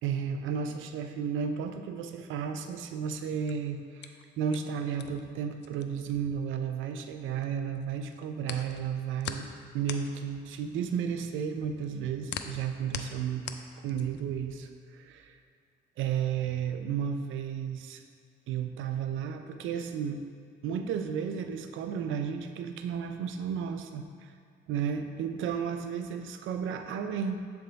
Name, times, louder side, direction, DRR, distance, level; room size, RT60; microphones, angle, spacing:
voice 1, 0.0-9.5 9.7-13.5 13.8-15.3 16.0-18.0 18.5-20.2 20.6-24.3 24.7-27.4, right 7 dB, 85° right, 7 dB, 0.5 m, -33 dB
sound 1, 3.3-7.4 7.7-14.3, left 8 dB, 60° left, 0.4 m, -42 dB
7.6 x 3.5 x 3.9 m, 2.2 s
cardioid pair, 90°, 20 cm